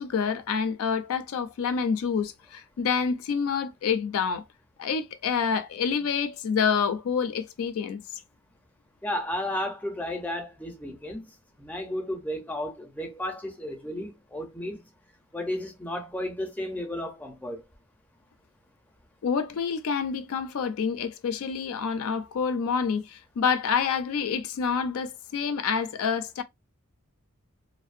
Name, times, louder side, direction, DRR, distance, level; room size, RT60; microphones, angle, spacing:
voice 1, 0.0-4.4 4.8-8.0 19.2-26.4, left 6 dB, 75° left, 0.3 m, -27 dB
voice 2, 9.0-11.2 11.6-14.8 15.3-17.6, left 1 dB, 5° left, 0.5 m, -33 dB
2.6 x 2.0 x 2.4 m
head